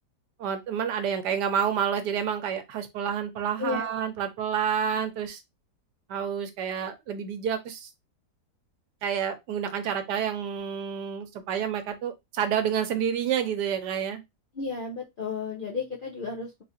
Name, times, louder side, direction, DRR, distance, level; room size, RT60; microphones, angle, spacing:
voice 1, 0.4-5.4 6.1-7.9 9.0-14.2, right 8 dB, 85° right, 1.3 m, -29 dB
voice 2, 3.6-3.9 14.5-16.6, left 5 dB, 65° left, 0.5 m, -33 dB
3.6 x 2.4 x 2.6 m
omnidirectional pair, 1.7 m